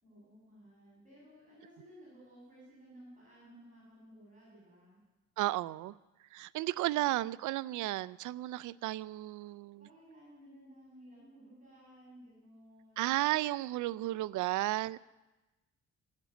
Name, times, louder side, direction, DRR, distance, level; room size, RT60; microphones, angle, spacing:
voice 1, 0.0-5.0 9.8-13.0, equal, 25° right, -5 dB, 6.7 m, -56 dB
voice 2, 5.4-5.9 6.3-9.9 13.0-15.0, right 16 dB, 80° right, 20 dB, 0.4 m, -33 dB
15.0 x 7.4 x 9.1 m, 1.1 s
cardioid pair, 90°, 30 cm